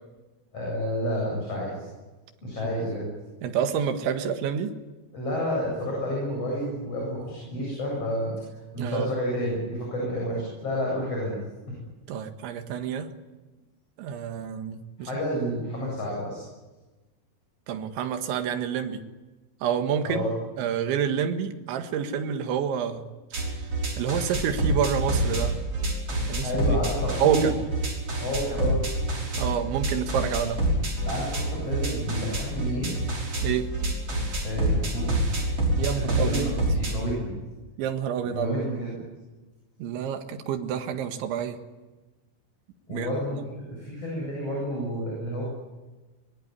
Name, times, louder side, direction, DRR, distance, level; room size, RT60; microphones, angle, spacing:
voice 1, 0.5-1.9 2.4-3.1 5.1-8.4 8.7-11.4 15.0-16.4 20.0-20.3 26.2-27.5 28.2-28.9 31.0-32.9 34.4-35.1 35.9-37.3 38.3-39.0 42.9-45.4, equal, 30° left, -3 dB, 8.9 m, -30 dB
voice 2, 3.4-4.8 8.8-9.1 12.1-13.1 14.0-15.1 17.7-19.0 19.6-20.2 20.6-23.1 24.0-25.6 26.3-26.8 27.2-27.6 29.4-30.6 33.4-33.7 35.8-36.4 37.8-38.7 39.8-41.6 42.9-43.1, right 8 dB, 70° right, 7 dB, 3.9 m, -28 dB
sound 1, 23.3-36.9, right 1 dB, 30° right, 6.0 m, -27 dB
23.5 x 22.5 x 9.8 m, 1.2 s
omnidirectional pair, 5.8 m